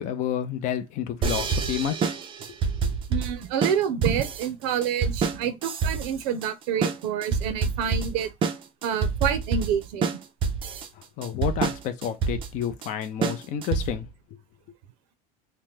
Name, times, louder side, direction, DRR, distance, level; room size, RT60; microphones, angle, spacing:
voice 1, 0.0-2.1 2.8-3.0 11.0-14.1, left 9 dB, 40° left, 0.4 m, -30 dB
sound 1, 1.2-14.1, right 5 dB, 25° right, 0.4 m, -27 dB
voice 2, 3.1-8.3 8.8-10.2, right 8 dB, 80° right, 0.6 m, -28 dB
2.9 x 2.1 x 3.3 m
cardioid pair, 150°, 21 cm